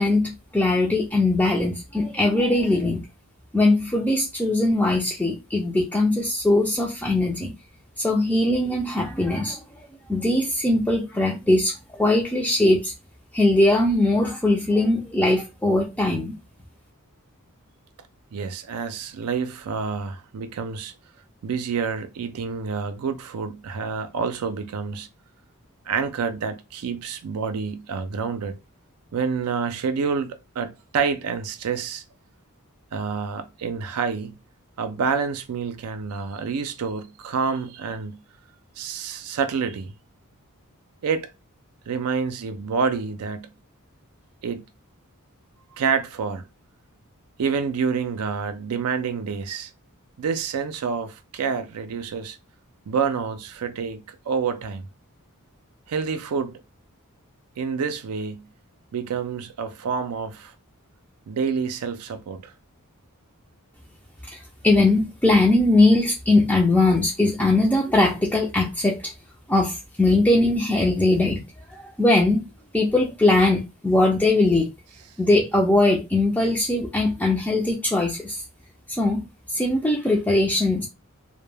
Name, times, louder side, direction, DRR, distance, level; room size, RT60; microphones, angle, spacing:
voice 1, 0.0-3.1 3.5-7.5 8.0-9.6 10.1-12.9 13.3-16.3 64.2-69.1 69.5-71.5 71.7-74.7 75.2-78.4 78.9-79.2 79.5-80.9, left 2 dB, 5° left, 0.3 m, -20 dB
voice 2, 18.3-20.9 21.4-25.1 25.9-28.6 29.1-32.0 32.9-34.3 34.8-38.2 38.8-39.9 41.0-41.3 41.9-43.5 44.4-44.6 45.8-46.4 47.4-49.7 50.2-52.4 52.9-54.8 55.9-56.6 57.6-58.5 58.9-60.5 61.3-62.5 70.1-70.2, right 5 dB, 80° right, 0.4 m, -28 dB
2.1 x 2.1 x 3.2 m
head